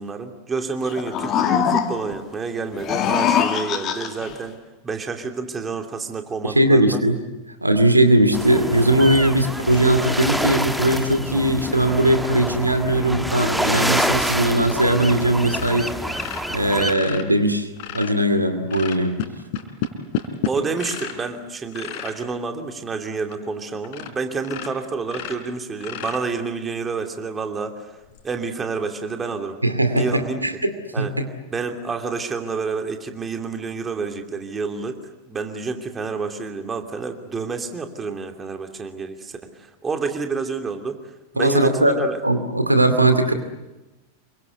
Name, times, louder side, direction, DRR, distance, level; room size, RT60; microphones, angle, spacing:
voice 1, 0.0-4.5 4.8-7.0 20.4-28.0 28.2-29.6 29.9-30.4 30.9-31.1 31.5-35.0 35.3-41.0 41.3-42.2, right 4 dB, 15° right, 5 dB, 2.8 m, -29 dB
sound 1, 0.8-2.2 2.7-4.3, left 8 dB, 30° left, 2.3 m, -22 dB
voice 2, 6.4-7.2 7.6-15.9 16.5-17.7 17.9-19.1 29.6-30.7 31.0-31.2 41.4-42.0 42.2-43.3, right 1 dB, 85° right, 8 dB, 2.4 m, -19 dB
sound 2, 8.3-16.9, equal, ahead, 1.4 m, -27 dB
sound 3, 15.0-15.2 15.5-18.2 18.7-21.2 21.7-22.2 22.8-22.9 23.3-23.4 23.8-24.1 24.4-26.6 28.1-28.2, left 8 dB, 50° left, 3.9 m, -31 dB
28.0 x 24.5 x 8.2 m, 1.0 s
figure-of-eight pair, 90°, 0 cm